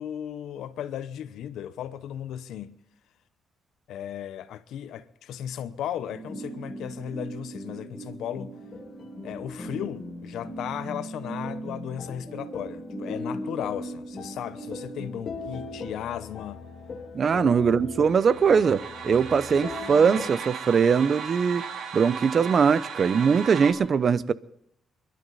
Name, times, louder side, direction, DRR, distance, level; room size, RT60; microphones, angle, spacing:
voice 1, 0.0-2.7 3.9-8.5 9.2-16.7 17.3-17.5, left 10 dB, 85° left, 0.9 m, -36 dB
sound 1, 6.0-16.1, right 2 dB, 15° left, 6.4 m, -39 dB
sound 2, 8.6-20.3, left 4 dB, 50° left, 1.9 m, -40 dB
voice 2, 17.1-21.6 21.9-24.3, right 6 dB, 50° right, 0.7 m, -21 dB
sound 3, 18.1-23.7, right 6 dB, 70° right, 2.6 m, -37 dB
28.5 x 12.0 x 4.1 m
cardioid pair, 85°, 0 cm